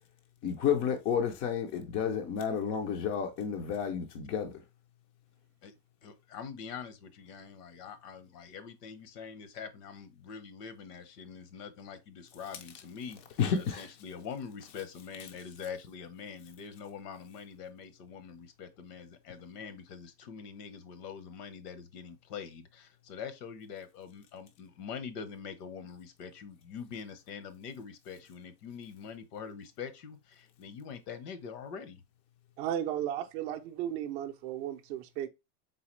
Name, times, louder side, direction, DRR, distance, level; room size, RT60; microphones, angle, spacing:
voice 1, 0.4-4.6 13.4-13.9, left 7 dB, 25° left, 0.4 m, -31 dB
voice 2, 6.0-13.2 13.6-32.0, left 6 dB, 65° left, 1.0 m, -44 dB
voice 3, 32.6-35.3, right 11 dB, 45° right, 0.5 m, -35 dB
4.0 x 3.5 x 3.1 m
supercardioid pair, 130°, 50 cm